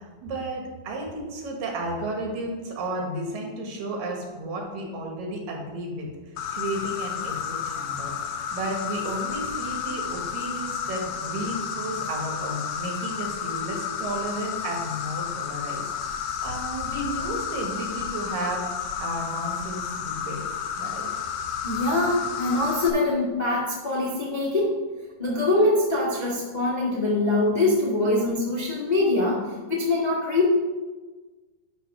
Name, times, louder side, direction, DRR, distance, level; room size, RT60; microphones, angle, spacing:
voice 1, 0.0-18.7 19.0-20.4 20.8-21.1, right 1 dB, 90° right, 0 dB, 3.2 m, -33 dB
Insect, 6.4-22.9, left 7 dB, 75° left, 1.9 m, -32 dB
voice 2, 21.6-24.7 25.2-30.5, left 2 dB, 45° left, -6 dB, 0.5 m, -23 dB
10.0 x 3.7 x 5.9 m, 1.3 s
omnidirectional pair, 3.8 m